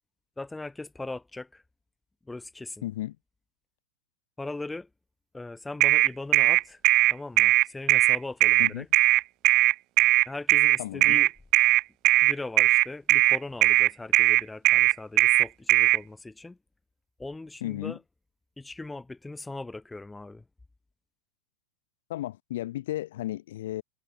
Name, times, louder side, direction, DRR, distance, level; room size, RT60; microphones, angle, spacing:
voice 1, 0.4-1.6 2.2-2.9 4.4-4.9 5.3-6.8 7.1-8.9 10.3-11.3 12.2-16.6 17.2-18.0 18.6-20.4, left 2 dB, 5° left, 3.2 m, -39 dB
voice 2, 2.8-3.2 8.6-8.9 10.8-11.2 17.6-18.0 22.1-23.8, left 14 dB, 55° left, 1.2 m, -34 dB
sound 1, 5.8-16.0, right 19 dB, 40° right, 0.8 m, -19 dB
figure-of-eight pair, 90°, 0 cm